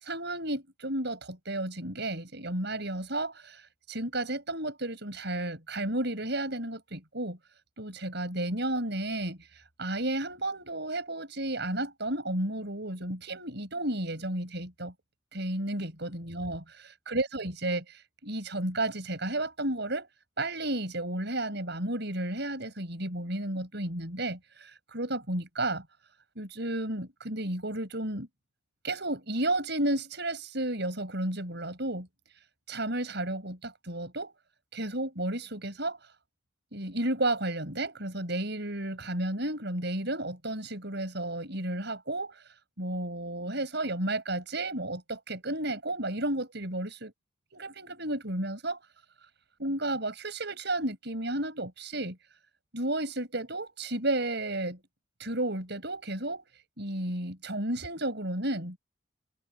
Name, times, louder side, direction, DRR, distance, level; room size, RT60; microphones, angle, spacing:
voice 1, 0.0-3.6 3.9-7.4 7.8-9.5 9.8-14.9 15.3-20.1 20.4-25.8 26.4-28.3 28.8-32.1 32.7-34.3 34.7-36.0 36.7-42.3 42.8-47.1 47.5-48.8 49.6-52.2 52.7-54.8 55.2-56.4 56.8-58.8, right 1 dB, 55° right, 7.8 m, -32 dB
head